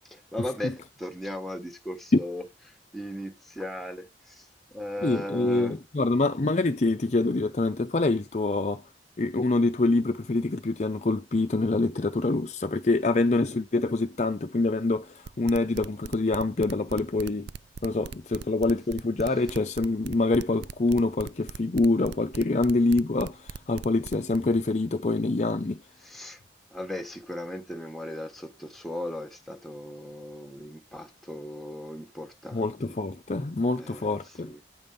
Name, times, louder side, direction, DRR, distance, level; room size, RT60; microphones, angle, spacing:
voice 1, 0.0-2.4 2.9-4.5 4.7-5.8 18.3-18.4 26.0-26.4 26.7-33.0 33.8-34.1 34.4-34.6, left 1 dB, ahead, 1.2 m, -37 dB
voice 2, 5.0-8.8 9.2-17.5 17.8-25.8 32.5-34.5, left 2 dB, 40° left, 0.5 m, -26 dB
sound 1, 15.3-24.4, right 6 dB, 65° right, 0.4 m, -40 dB
8.5 x 5.2 x 5.5 m
head